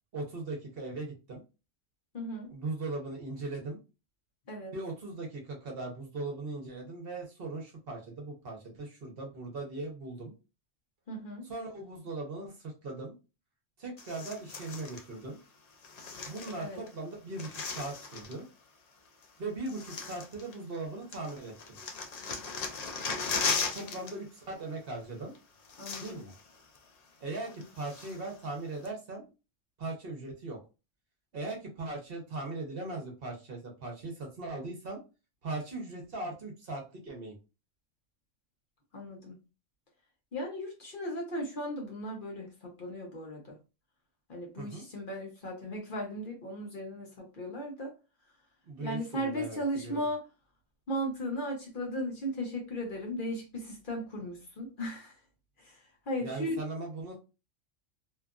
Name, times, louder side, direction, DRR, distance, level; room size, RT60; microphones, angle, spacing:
voice 1, 0.1-1.4 2.5-3.8 4.7-10.3 11.4-13.1 13.8-15.4 16.2-18.4 19.4-21.8 23.7-25.3 26.0-26.3 27.2-29.2 29.8-30.6 31.3-35.0 35.4-37.4 44.6-44.8 48.6-50.1 56.2-57.1, right 2 dB, 55° right, 1 dB, 1.0 m, -39 dB
voice 2, 2.1-2.5 4.5-4.7 11.1-11.4 16.6-16.8 25.8-26.2 38.9-39.4 40.3-43.6 44.3-47.9 48.8-50.2 50.9-55.1 55.6-56.6, equal, 50° left, 0 dB, 0.9 m, -36 dB
sound 1, 14.0-15.0 15.8-16.9 17.1-18.4 19.2-19.3 19.7-20.8 21.1-24.1 24.4-24.6 25.3-25.4 25.6-26.4 26.8-26.9 27.4-28.3 28.8-28.9, left 5 dB, 65° left, 0.4 m, -37 dB
2.9 x 2.4 x 2.3 m, 0.30 s
omnidirectional pair, 1.2 m